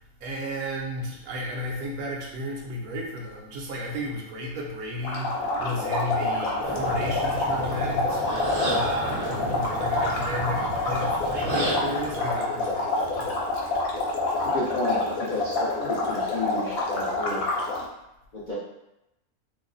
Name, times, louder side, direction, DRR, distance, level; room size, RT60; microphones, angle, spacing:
voice 1, 0.0-13.4, equal, 80° right, -1 dB, 1.2 m, -33 dB
sound 1, 5.0-17.9, left 2 dB, 70° left, 1.1 m, -27 dB
sound 2, 6.6-12.2, right 1 dB, 40° right, 0.6 m, -33 dB
voice 2, 14.4-17.4 18.3-18.5, left 2 dB, 55° left, -9 dB, 0.5 m, -31 dB
3.0 x 2.0 x 3.8 m, 0.90 s
omnidirectional pair, 1.6 m